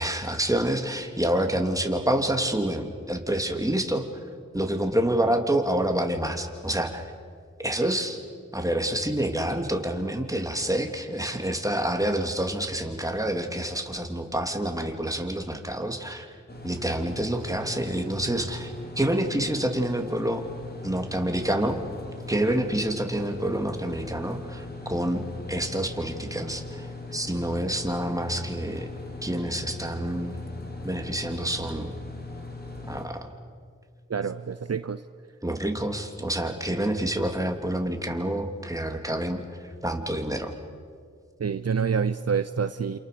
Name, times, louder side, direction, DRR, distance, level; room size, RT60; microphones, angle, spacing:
voice 1, 0.0-4.1 4.5-7.0 7.6-8.2 8.5-16.3 16.6-20.4 20.8-21.8 22.3-28.9 29.2-30.4 30.8-31.9 32.9-33.3 35.4-40.5, right 1 dB, 10° right, 4 dB, 3.1 m, -28 dB
sound 1, 16.5-33.1, left 3 dB, 30° left, 4.5 m, -40 dB
voice 2, 34.1-35.0 41.4-43.0, right 6 dB, 55° right, 12 dB, 0.8 m, -27 dB
28.0 x 27.5 x 6.9 m, 2.1 s
cardioid pair, 45°, 30 cm